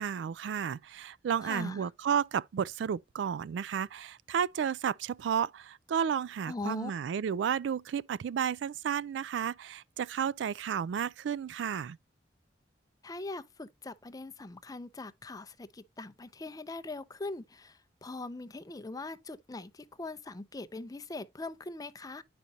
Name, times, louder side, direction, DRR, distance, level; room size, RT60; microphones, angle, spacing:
voice 1, 0.0-12.0, right 8 dB, 70° right, 0.3 m, -32 dB
voice 2, 1.4-1.8 6.5-6.9 13.0-22.2, left 2 dB, 20° left, 0.5 m, -41 dB
9.6 x 5.1 x 2.7 m
head